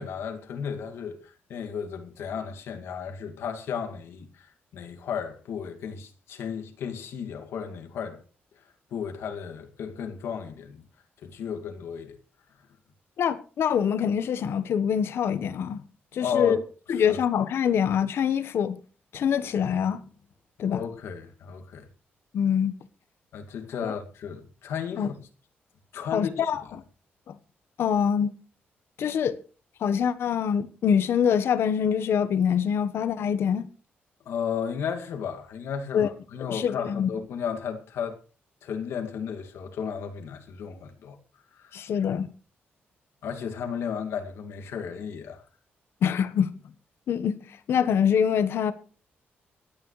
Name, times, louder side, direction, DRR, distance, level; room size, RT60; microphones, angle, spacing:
voice 1, 0.0-8.2 8.6-10.8 11.2-12.2 16.2-16.6 16.9-17.2 20.7-21.9 23.3-25.1 25.9-26.5 34.3-38.2 38.6-41.2 41.5-41.8 43.2-45.4, left 7 dB, 90° left, 2.2 m, -34 dB
voice 2, 13.2-15.8 16.1-16.6 16.9-18.8 19.1-20.0 20.6-20.8 22.3-22.7 23.8-23.9 25.0-25.1 26.1-26.6 27.3-27.4 27.8-28.3 29.0-29.4 29.8-33.7 35.9-36.1 36.5-37.1 41.7-42.3 46.0-46.5 47.1-47.4 47.7-48.7, left 8 dB, 70° left, 1.2 m, -24 dB
25.0 x 9.2 x 3.2 m
cardioid pair, 125°, 4 cm